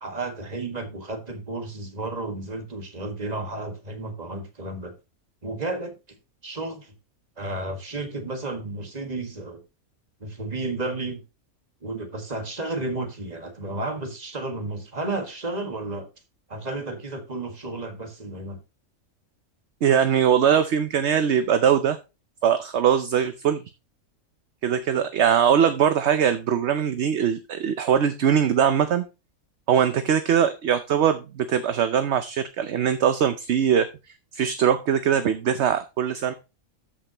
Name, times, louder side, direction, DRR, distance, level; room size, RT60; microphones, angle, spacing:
voice 1, 0.0-4.9 5.4-5.9 6.4-6.9 7.4-9.6 10.2-11.2 11.8-16.1 16.5-18.6, right 2 dB, 30° right, 1.7 m, -32 dB
voice 2, 19.8-22.0 22.4-23.6 24.6-29.0 29.7-33.9 34.3-36.3, right 8 dB, 60° right, 0.9 m, -21 dB
13.5 x 5.6 x 2.9 m
omnidirectional pair, 1.5 m